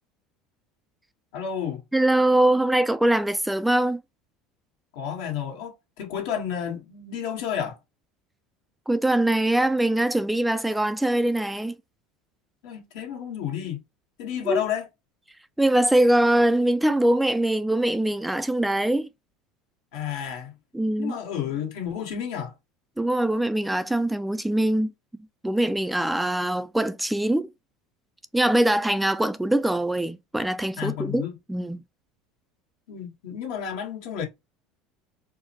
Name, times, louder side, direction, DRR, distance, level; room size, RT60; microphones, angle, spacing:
voice 1, 1.3-1.8 4.9-7.8 12.6-13.8 14.2-14.9 19.9-20.5 21.0-22.5 30.8-31.4 32.9-34.2, left 8 dB, 75° left, 1.5 m, -31 dB
voice 2, 1.9-4.0 8.9-11.8 14.5-14.6 15.6-19.1 20.7-21.2 23.0-24.9 25.4-27.5 28.3-31.8, right 1 dB, 5° right, 0.3 m, -22 dB
4.6 x 2.1 x 2.8 m
supercardioid pair, 100°, 0 cm